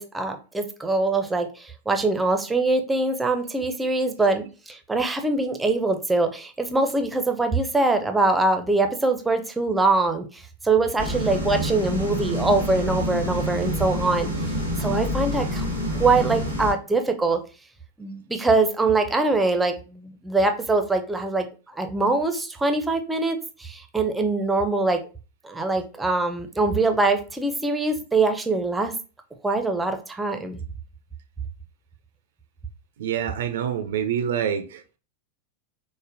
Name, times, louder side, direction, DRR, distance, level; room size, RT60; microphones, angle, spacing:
voice 1, 0.0-14.3 14.8-15.6 16.0-17.4 18.0-25.0 25.4-28.9 29.4-30.6, right 3 dB, 10° right, 0.5 m, -23 dB
sound 1, 11.0-16.7, equal, 80° left, 1.0 m, -27 dB
voice 2, 33.0-34.8, right 9 dB, 60° right, 0.4 m, -26 dB
5.0 x 2.1 x 2.5 m
figure-of-eight pair, 90°, 0 cm